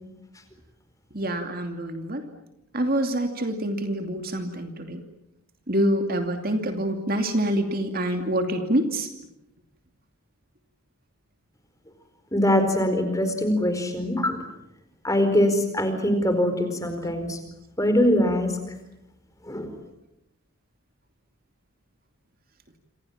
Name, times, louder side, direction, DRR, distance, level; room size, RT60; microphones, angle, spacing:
voice 1, 1.1-2.2 2.7-5.0 5.7-9.1, right 1 dB, 40° right, 6 dB, 2.7 m, -26 dB
voice 2, 12.3-14.4 15.0-17.4 17.8-18.5 19.5-19.7, left 1 dB, 15° left, 8 dB, 4.5 m, -22 dB
28.0 x 27.5 x 7.5 m, 0.87 s
head